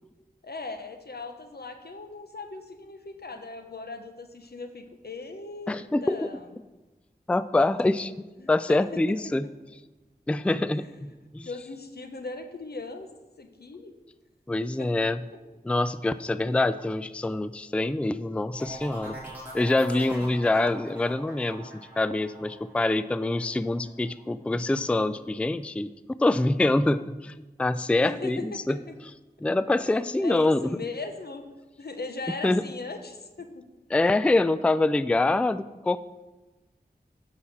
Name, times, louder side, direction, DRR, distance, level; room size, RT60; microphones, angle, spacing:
voice 1, 0.4-5.8 6.0-6.5 8.4-8.8 10.7-11.0 11.4-13.1 13.4-13.9 14.8-14.9 19.9-20.4 28.0-28.9 29.8-29.9 30.2-31.4 31.8-33.6, left 3 dB, 80° left, 6 dB, 0.9 m, -39 dB
voice 2, 5.7-6.3 7.3-8.1 8.5-9.5 10.3-11.5 14.5-15.2 15.6-19.2 19.5-25.9 26.2-28.8 29.4-30.7 32.4-32.6 33.9-36.0, left 2 dB, 5° left, 14 dB, 0.3 m, -25 dB
sound 1, 18.6-24.2 24.6-25.1, right 1 dB, 10° right, 3.5 m, -43 dB
7.8 x 5.7 x 7.2 m, 1.1 s
wide cardioid pair, 55°, 16 cm